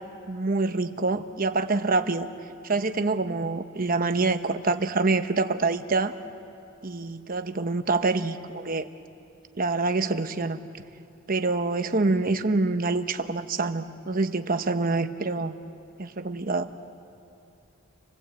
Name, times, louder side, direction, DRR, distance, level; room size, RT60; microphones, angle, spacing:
voice 1, 0.3-2.3 2.6-6.1 6.8-8.9 9.6-10.6 11.3-15.5 16.0-16.7, right 3 dB, 40° right, 8 dB, 1.0 m, -26 dB
29.0 x 21.5 x 8.4 m, 2.6 s
head